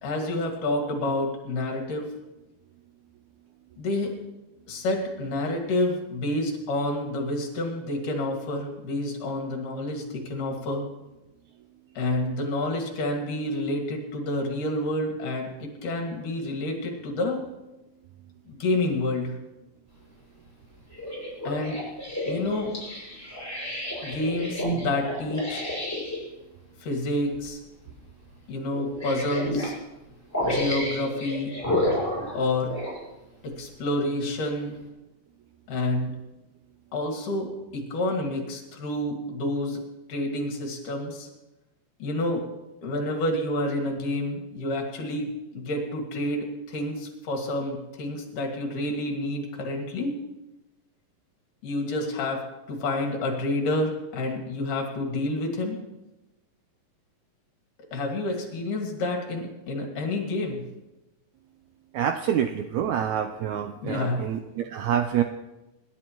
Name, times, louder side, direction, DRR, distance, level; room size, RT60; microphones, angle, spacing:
voice 1, 0.0-2.1 3.8-4.1 4.7-10.9 12.0-15.5 15.8-17.4 18.5-19.4 21.5-21.8 22.3-22.7 24.0-25.6 26.8-27.6 28.5-29.8 30.4-31.5 32.3-32.8 33.4-34.7 35.7-36.2 36.9-39.8 40.1-41.3 42.0-42.4 42.8-50.1 51.6-55.8 57.9-60.6 63.8-64.3, left 1 dB, 70° left, 1 dB, 3.6 m, -29 dB
sound 1, 20.9-26.2 27.3-27.5 27.9-28.0 28.7-29.7 30.3-33.0 33.6-33.7, left 1 dB, 5° left, 5.9 m, -30 dB
voice 2, 61.9-65.2, right 9 dB, 90° right, 7 dB, 1.6 m, -27 dB
25.5 x 11.5 x 3.0 m, 1.0 s
omnidirectional pair, 3.9 m